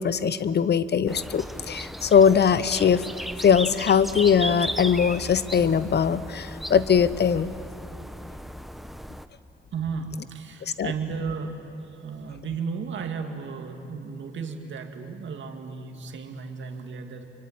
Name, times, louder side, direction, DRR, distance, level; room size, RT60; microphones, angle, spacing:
voice 1, 0.0-3.0 3.4-7.5 10.8-10.9, left 7 dB, 60° left, 15 dB, 0.9 m, -21 dB
sound 1, 1.1-9.3, equal, ahead, 1.1 m, -36 dB
voice 2, 9.7-11.6 11.9-17.2, right 5 dB, 75° right, 4 dB, 2.2 m, -34 dB
25.0 x 24.0 x 9.0 m, 2.7 s
supercardioid pair, 55°, 20 cm